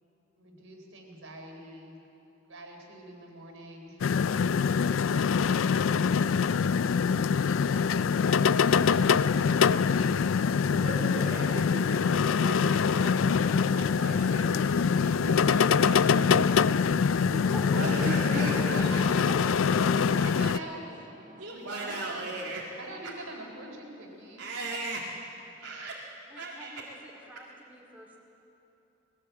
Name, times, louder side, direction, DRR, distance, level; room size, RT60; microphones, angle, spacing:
voice 1, 0.4-2.0 2.5-4.0 4.8-5.9 6.2-6.7 7.5-10.7 18.1-19.3 19.9-20.9 21.4-22.3 22.8-24.5, right 2 dB, 90° right, 1 dB, 3.8 m, -45 dB
sound 1, 4.0-20.6, left 6 dB, 80° left, 0.4 m, -24 dB
voice 2, 10.5-17.2 17.6-18.9 19.4-20.0 21.4-22.7 23.0-23.1 24.4-25.1 25.6-26.0 26.4-26.8, right 2 dB, 75° right, -4 dB, 2.1 m, -38 dB
sound 2, 15.0-21.4, right 3 dB, 40° right, 0.7 m, -49 dB
voice 3, 17.3-17.8 18.4-18.5 18.8-18.9 26.3-28.2, equal, 10° right, -3 dB, 2.3 m, -45 dB
sound 3, 20.6-20.7, equal, 10° left, 0.7 m, -45 dB
20.5 x 16.0 x 8.1 m, 2.9 s
head